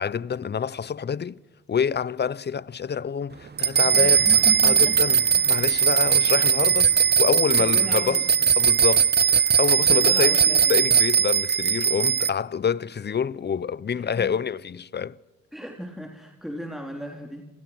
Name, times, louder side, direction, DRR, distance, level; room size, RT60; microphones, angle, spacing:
voice 1, 0.0-1.4 1.7-4.2 4.6-8.2 8.6-15.2, left 7 dB, 35° left, 0.9 m, -27 dB
sound 1, 3.6-12.3, right 7 dB, 35° right, 1.1 m, -19 dB
voice 2, 3.9-5.4 7.6-8.2 9.9-10.8 13.9-14.3 15.5-17.4, equal, ahead, 4.1 m, -36 dB
28.5 x 28.0 x 6.2 m
cardioid pair, 90°, 30 cm